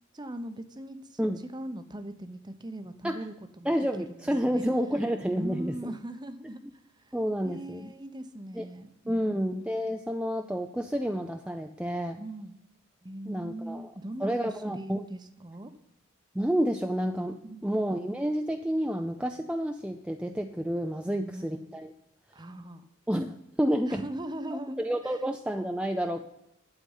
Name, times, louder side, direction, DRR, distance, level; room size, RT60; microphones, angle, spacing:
voice 1, 0.1-3.8 4.1-4.7 5.3-6.6 7.0-7.1 7.4-9.5 12.2-12.6 13.0-15.8 17.4-17.8 21.1-21.7 22.3-22.8 23.9-24.8 25.0-25.2, right 1 dB, 20° right, 10 dB, 0.8 m, -40 dB
voice 2, 3.6-5.9 7.1-7.9 8.5-8.7 9.1-12.2 13.3-13.9 14.2-15.1 16.3-21.9 23.1-24.0 24.5-26.2, equal, 5° right, 5 dB, 0.5 m, -30 dB
11.5 x 8.4 x 5.5 m, 0.82 s
head